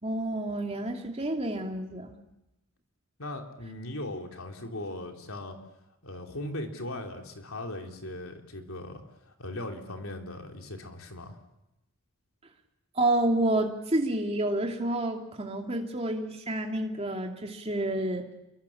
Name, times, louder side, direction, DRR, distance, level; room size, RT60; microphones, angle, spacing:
voice 1, 0.0-2.1 12.9-18.2, right 1 dB, 30° right, 2 dB, 2.9 m, -29 dB
voice 2, 3.2-5.6 6.0-11.4, left 1 dB, 70° left, 3 dB, 3.4 m, -39 dB
29.0 x 23.5 x 7.3 m, 0.92 s
head